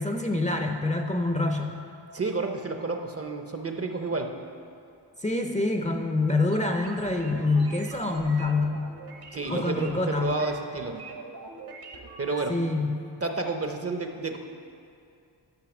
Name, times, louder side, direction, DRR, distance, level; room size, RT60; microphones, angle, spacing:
voice 1, 0.0-1.8 5.2-8.9 9.5-10.3 12.5-13.0, left 2 dB, 15° left, 3 dB, 0.6 m, -26 dB
voice 2, 2.1-4.3 9.3-11.0 12.2-12.6 13.2-14.4, right 3 dB, 30° right, 4 dB, 0.7 m, -30 dB
sound 1, 6.5-12.4, right 4 dB, 55° right, 1.1 m, -44 dB
12.0 x 5.6 x 7.1 m, 2.5 s
wide cardioid pair, 130°, 45 cm